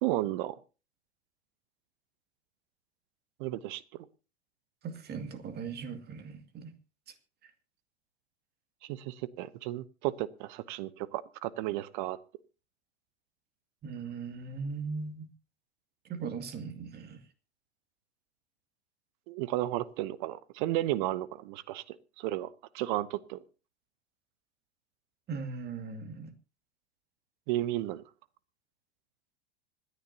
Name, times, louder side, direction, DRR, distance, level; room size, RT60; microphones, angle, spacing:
voice 1, 0.0-0.6 3.4-3.8 8.8-12.2 19.3-22.5 22.7-23.4 27.5-28.0, right 15 dB, 50° right, 1.0 m, -33 dB
voice 2, 4.8-6.7 7.1-7.2 7.4-7.5 13.8-15.3 16.0-17.2 25.3-26.3, right 5 dB, 30° right, 2.3 m, -39 dB
26.0 x 10.0 x 2.8 m
figure-of-eight pair, 90°, 32 cm